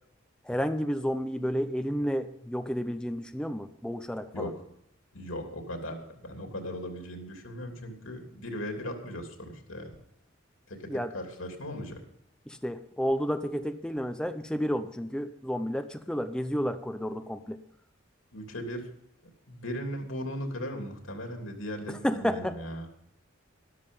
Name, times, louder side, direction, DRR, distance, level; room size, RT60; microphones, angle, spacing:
voice 1, 0.4-4.5 10.9-11.1 12.5-17.6 21.9-22.6, equal, 5° left, 8 dB, 0.5 m, -31 dB
voice 2, 5.1-9.9 10.7-12.0 18.3-18.8 19.5-22.9, equal, 85° left, 3 dB, 3.0 m, -38 dB
13.0 x 12.5 x 5.4 m, 0.72 s
head